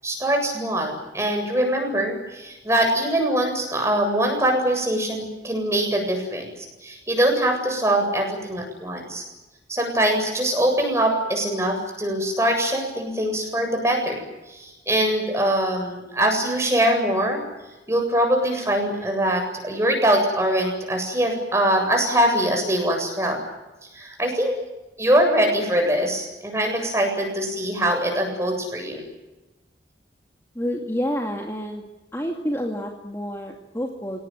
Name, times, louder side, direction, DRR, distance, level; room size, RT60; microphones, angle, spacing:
voice 1, 0.0-9.2 9.7-17.4 17.9-23.4 23.9-24.6 25.0-29.0, right 1 dB, 15° right, 3 dB, 8.0 m, -23 dB
voice 2, 30.5-31.9 32.1-34.2, equal, 15° left, 1 dB, 2.4 m, -28 dB
29.0 x 19.0 x 9.3 m, 1.1 s
head